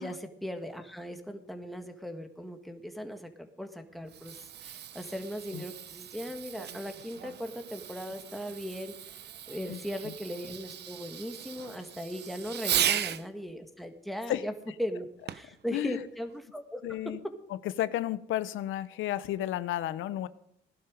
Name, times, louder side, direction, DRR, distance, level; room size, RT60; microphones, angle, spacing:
voice 1, 0.0-14.5 14.8-15.1 15.3-17.0, equal, ahead, 5 dB, 1.8 m, -38 dB
Fireworks, 3.9-13.3 15.3-15.6 16.3-16.4, right 10 dB, 55° right, 0.7 m, -36 dB
voice 2, 16.8-17.2 17.5-20.3, left 13 dB, 85° left, 16 dB, 0.8 m, -32 dB
17.5 x 11.5 x 5.2 m, 0.72 s
cardioid pair, 90°, 20 cm